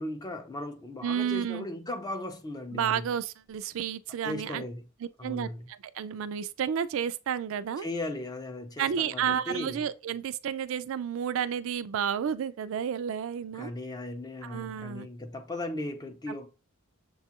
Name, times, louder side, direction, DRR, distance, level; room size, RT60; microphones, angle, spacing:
voice 1, 0.0-3.1 4.2-4.8 5.2-5.7 7.8-9.8 13.5-16.5, left 1 dB, 20° left, 0.4 m, -37 dB
voice 2, 1.0-1.7 2.7-4.6 5.0-7.9 8.8-13.7 14.4-15.1 16.3-16.4, right 8 dB, 65° right, 0.3 m, -31 dB
6.6 x 2.3 x 2.8 m
head